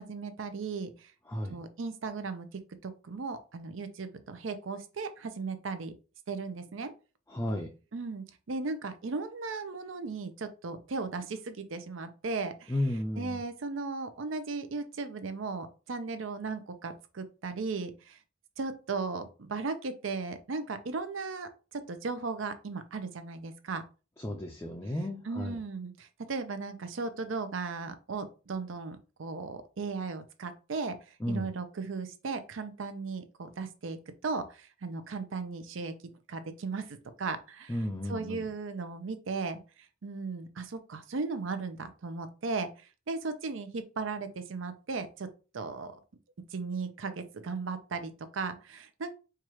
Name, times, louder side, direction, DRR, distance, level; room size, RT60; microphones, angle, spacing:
voice 1, 0.0-1.1 1.5-2.5 2.8-5.9 6.3-6.9 7.9-12.8 13.2-18.2 18.6-23.8 25.2-31.0 31.3-34.0 34.2-35.9 36.3-37.8 38.1-39.6 40.0-42.7 43.1-45.3 45.5-46.0 46.5-49.1, right 4 dB, 85° right, 10 dB, 0.6 m, -36 dB
voice 2, 7.3-7.7 12.7-13.4 24.2-25.6 31.2-31.5 37.7-38.5, left 1 dB, 15° left, 1 dB, 0.4 m, -33 dB
4.6 x 2.4 x 3.0 m, 0.33 s
head